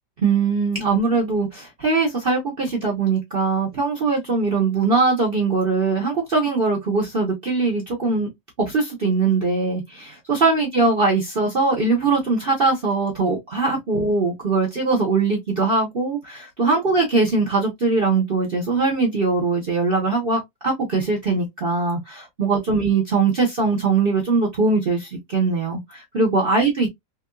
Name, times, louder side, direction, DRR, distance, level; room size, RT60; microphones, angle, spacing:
voice 1, 0.2-8.3 8.6-26.9, right 4 dB, 45° right, 0.8 m, -21 dB
3.6 x 2.6 x 2.3 m
omnidirectional pair, 1.9 m